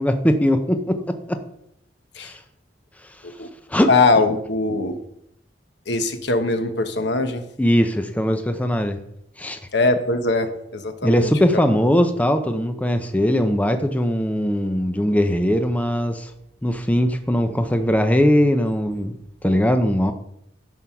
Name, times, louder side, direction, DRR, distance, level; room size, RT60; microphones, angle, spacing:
voice 1, 0.0-1.4 2.2-2.4 3.7-3.9 7.6-9.0 9.4-9.6 11.0-16.3 16.6-19.1 19.4-20.1, equal, 10° left, 7 dB, 0.6 m, -20 dB
voice 2, 3.9-5.0 5.9-7.4 9.7-11.6, left 3 dB, 70° left, 8 dB, 1.1 m, -21 dB
11.0 x 6.3 x 5.8 m, 0.76 s
head